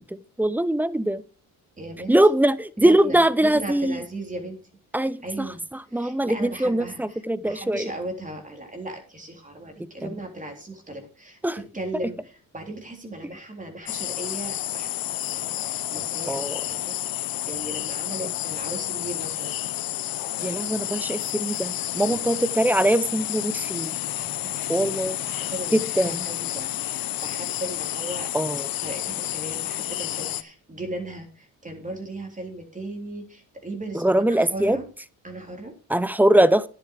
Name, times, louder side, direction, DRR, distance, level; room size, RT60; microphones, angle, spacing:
voice 1, 0.1-1.2 2.1-4.0 4.9-5.5 5.9-7.9 11.4-11.6 16.3-16.5 20.4-23.9 24.7-25.1 25.7-26.2 28.3-28.7 33.9-34.8 35.9-36.7, right 1 dB, 5° right, 18 dB, 0.6 m, -22 dB
voice 2, 1.8-2.2 2.8-4.6 5.2-19.6 22.0-22.4 24.2-28.3 28.8-34.9 35.2-35.7, right 1 dB, 20° right, 3 dB, 3.5 m, -37 dB
sound 1, 13.9-30.4, left 14 dB, 65° left, 0.7 m, -30 dB
10.5 x 8.6 x 4.8 m, 0.37 s
cardioid pair, 85°, 38 cm